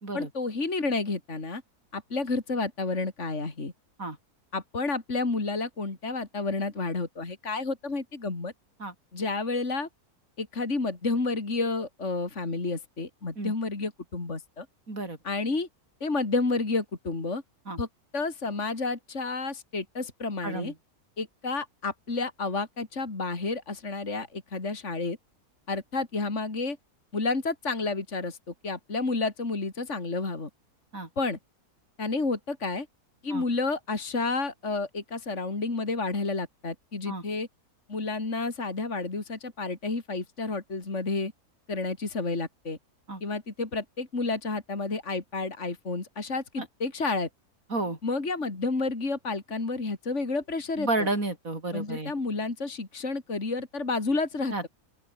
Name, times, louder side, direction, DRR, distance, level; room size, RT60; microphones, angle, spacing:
voice 1, 0.1-1.6 1.9-3.7 4.5-8.5 9.1-9.9 10.4-14.7 15.2-15.7 16.0-17.4 17.8-17.9 18.1-20.7 21.2-25.2 25.7-26.8 27.1-30.5 31.2-31.4 32.0-32.9 33.2-37.5 37.9-41.3 41.7-42.8 43.2-47.3 48.0-51.1 51.7-54.7, left 3 dB, 45° left, 3.5 m, -30 dB
voice 2, 14.9-15.2 17.7-17.8 20.4-20.7 30.9-31.1 33.3-33.4 37.1-37.2 43.1-43.2 46.6-46.7 47.7-48.0 50.8-52.1 54.5-54.7, right 2 dB, 60° right, 5.3 m, -31 dB
open air
omnidirectional pair, 1.6 m